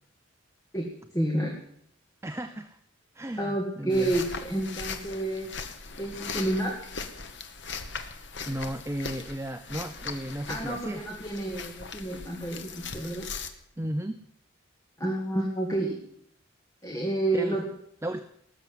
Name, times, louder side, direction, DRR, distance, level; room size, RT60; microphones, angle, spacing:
voice 1, 1.1-1.5 3.4-5.5 6.0-6.7 10.5-13.3 15.0-16.0 16.8-17.6, right 1 dB, 15° left, -1 dB, 2.0 m, -29 dB
voice 2, 2.2-2.8 3.1-4.1 8.5-11.1 13.8-14.2 17.3-17.6 18.0-18.3, right 1 dB, 15° right, 8 dB, 0.6 m, -34 dB
sound 1, 3.9-13.5, left 4 dB, 60° left, 1.3 m, -39 dB
19.0 x 7.2 x 9.4 m, 0.69 s
head